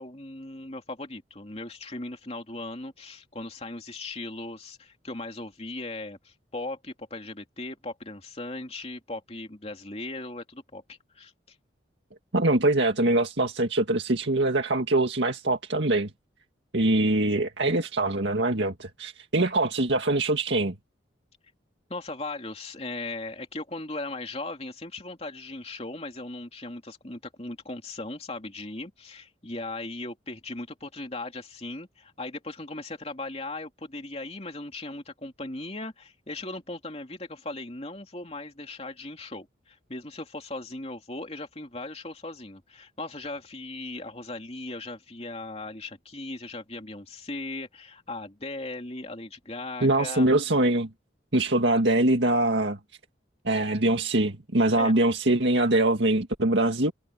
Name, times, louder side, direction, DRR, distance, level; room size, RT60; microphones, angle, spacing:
voice 1, 0.0-11.3 21.9-50.3 54.8-54.9, left 2 dB, 35° left, 3.0 m, -38 dB
voice 2, 12.3-16.1 16.7-20.7 49.8-50.9 51.3-52.8 53.5-56.9, right 2 dB, 75° right, 2.0 m, -23 dB
head